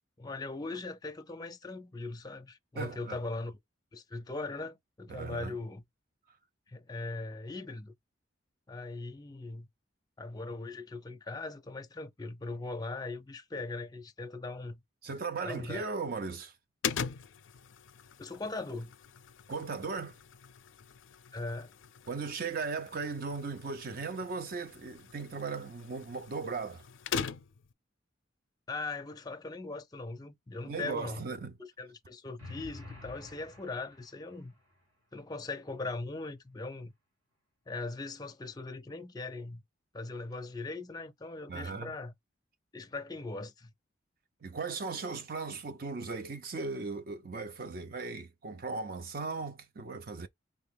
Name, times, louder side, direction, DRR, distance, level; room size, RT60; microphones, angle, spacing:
voice 1, 0.2-3.6 3.9-5.8 6.7-7.9 8.7-9.7 10.2-14.8 15.4-15.9 18.2-18.9 21.3-21.7 28.7-31.2 31.8-34.5 35.1-36.9 37.7-39.6 39.9-42.1 42.7-43.7, left 3 dB, 20° left, 0.5 m, -40 dB
voice 2, 2.8-3.2 5.1-5.6 15.0-16.5 19.5-20.2 22.1-26.8 30.6-31.5 41.5-41.9 44.4-50.3, right 4 dB, 45° right, 0.5 m, -37 dB
sound 1, 16.8-27.7, left 7 dB, 75° left, 0.4 m, -42 dB
sound 2, 32.4-34.4, left 2 dB, 80° right, 1.8 m, -49 dB
4.1 x 2.9 x 3.4 m
head